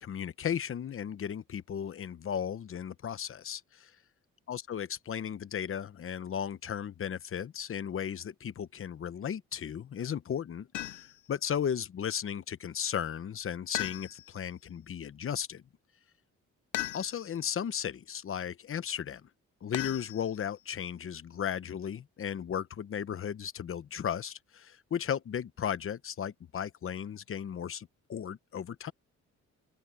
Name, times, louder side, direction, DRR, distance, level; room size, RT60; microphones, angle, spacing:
voice 1, 0.0-3.9 4.5-15.6 16.9-19.3 19.6-28.9, left 8 dB, 45° left, 1.1 m, -35 dB
sound 1, 10.7-11.3 13.7-14.5 16.7-17.4 19.7-20.6, left 15 dB, 75° left, 0.6 m, -38 dB
open air
cardioid pair, 90°, 30 cm